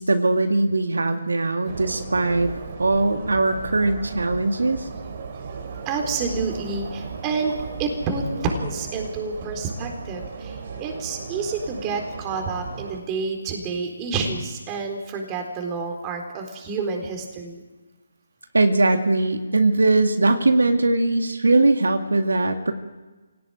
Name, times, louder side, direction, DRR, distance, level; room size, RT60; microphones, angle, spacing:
voice 1, 0.0-2.5 2.8-4.9 18.5-22.7, right 2 dB, 85° right, 5 dB, 2.1 m, -20 dB
sound 1, 1.7-13.0, right 5 dB, 45° right, 3.3 m, -36 dB
voice 2, 5.9-17.6, right 4 dB, 20° right, 2 dB, 4.1 m, -29 dB
25.0 x 18.0 x 9.1 m, 1.3 s
figure-of-eight pair, 155°, 0 cm